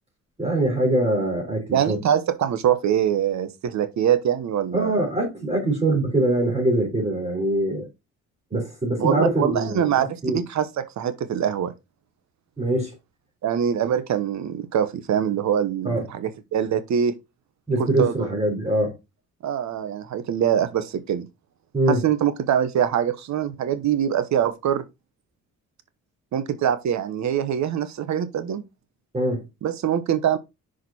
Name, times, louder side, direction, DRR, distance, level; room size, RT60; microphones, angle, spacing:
voice 1, 0.4-2.0 4.7-7.9 8.5-10.4 12.6-12.9 15.8-16.1 17.7-18.9 21.7-22.0 29.1-29.4, right 1 dB, 20° right, 3.6 m, -23 dB
voice 2, 1.7-5.0 9.0-11.7 13.4-17.1 17.8-18.1 19.4-21.3 21.9-24.8 26.3-28.6 29.6-30.4, right 9 dB, 65° right, 1.0 m, -24 dB
6.1 x 5.0 x 4.2 m
cardioid pair, 90°, 30 cm